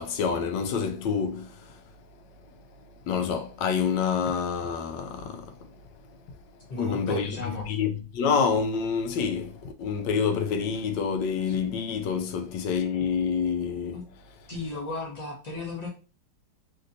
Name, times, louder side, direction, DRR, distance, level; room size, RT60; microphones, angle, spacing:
voice 1, 0.0-1.8 3.1-5.5 6.8-7.4 7.7-14.0, left 6 dB, 75° left, 1.2 m, -27 dB
voice 2, 6.7-7.8 11.5-11.6 13.9-14.0 14.5-15.9, left 3 dB, 45° left, 0.5 m, -35 dB
3.3 x 2.7 x 2.6 m
omnidirectional pair, 2.0 m